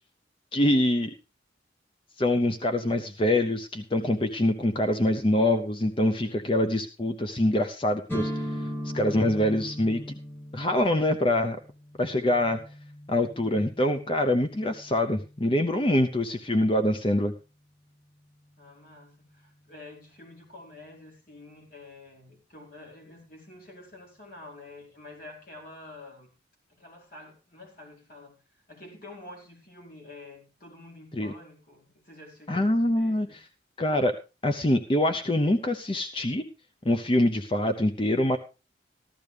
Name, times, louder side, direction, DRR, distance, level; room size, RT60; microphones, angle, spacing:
voice 1, 0.5-1.1 2.2-10.2 10.5-11.6 12.0-12.6 13.1-17.3 31.1-31.3 32.5-33.3 33.8-34.1 34.4-36.4 36.8-38.4, left 1 dB, 30° left, 7 dB, 0.7 m, -25 dB
sound 1, 8.1-15.9, equal, 10° left, 2.0 m, -39 dB
voice 2, 18.6-26.3 26.7-28.4 28.7-33.4, left 2 dB, 50° left, -1 dB, 4.7 m, -48 dB
15.0 x 12.5 x 3.4 m, 0.31 s
head